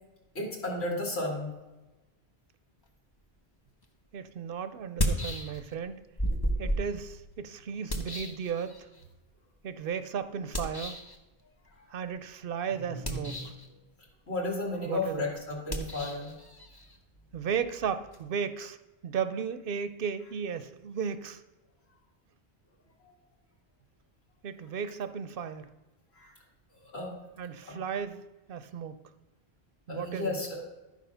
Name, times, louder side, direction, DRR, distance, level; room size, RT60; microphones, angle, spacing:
voice 1, 0.3-1.5 12.8-13.5 14.3-16.4 26.2-26.3 26.8-27.1 27.7-27.8 29.9-30.6, left 2 dB, 85° left, -2 dB, 2.4 m, -34 dB
sound 1, 3.8-3.9 4.8-5.9 6.2-9.0 10.5-11.2 12.9-13.7 15.6-18.2, equal, 25° left, 0.9 m, -34 dB
voice 2, 4.1-6.0 6.6-8.9 9.6-11.0 11.9-13.4 14.9-15.2 17.3-18.8 19.0-21.4 24.4-25.7 27.4-28.2 28.5-29.0 29.9-30.3, right 7 dB, 65° right, 12 dB, 0.8 m, -35 dB
12.0 x 4.8 x 5.6 m, 1.1 s
omnidirectional pair, 1.1 m